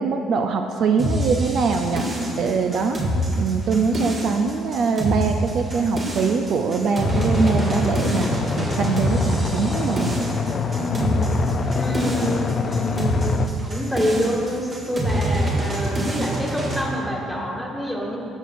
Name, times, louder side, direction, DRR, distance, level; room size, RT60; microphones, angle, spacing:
voice 1, 0.0-2.0 2.4-3.0 3.4-10.2, right 5 dB, 60° right, 5 dB, 0.4 m, -23 dB
sound 1, 1.0-16.8, right 1 dB, 35° right, 1.7 m, -26 dB
sound 2, 7.0-13.5, left 5 dB, 40° left, 0.4 m, -26 dB
voice 2, 10.7-11.2 11.7-18.2, equal, ahead, -3 dB, 1.7 m, -27 dB
14.5 x 6.4 x 2.5 m, 2.7 s
cardioid pair, 105°, 0 cm